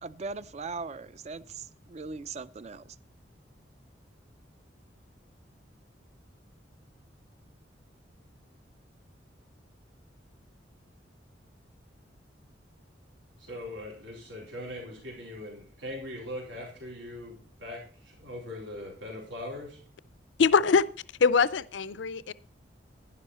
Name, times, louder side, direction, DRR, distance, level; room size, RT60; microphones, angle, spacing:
voice 1, 0.0-3.0, right 4 dB, 35° right, 0.4 m, -39 dB
voice 2, 13.4-19.8, left 1 dB, 90° right, 4.1 m, -41 dB
voice 3, 20.4-20.9 21.2-22.3, left 5 dB, 75° left, 0.5 m, -23 dB
11.5 x 11.0 x 4.2 m
head